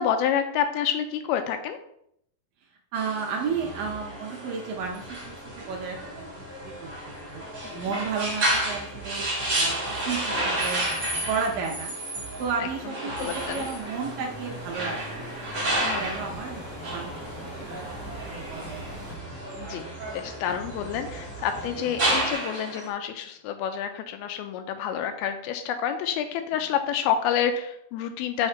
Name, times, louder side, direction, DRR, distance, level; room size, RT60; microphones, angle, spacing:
voice 1, 0.0-1.8 7.6-8.0 12.6-13.7 15.8-16.2 19.6-19.8 20.1-28.5, left 8 dB, 85° left, 7 dB, 2.4 m, -29 dB
voice 2, 2.9-6.9 7.2-7.5 7.7-9.8 10.1-10.8 11.3-11.9 12.4-15.3 15.6-16.6 16.9-17.2 17.4-18.8, right 5 dB, 75° right, 1 dB, 2.1 m, -33 dB
sound 1, 3.0-22.9, right 1 dB, 55° right, 0.8 m, -32 dB
sound 2, 3.4-22.3, right 1 dB, 55° left, 0.9 m, -44 dB
sound 3, 13.2-19.1, right 1 dB, 20° right, 2.0 m, -43 dB
5.7 x 4.5 x 4.3 m, 0.72 s
omnidirectional pair, 4.5 m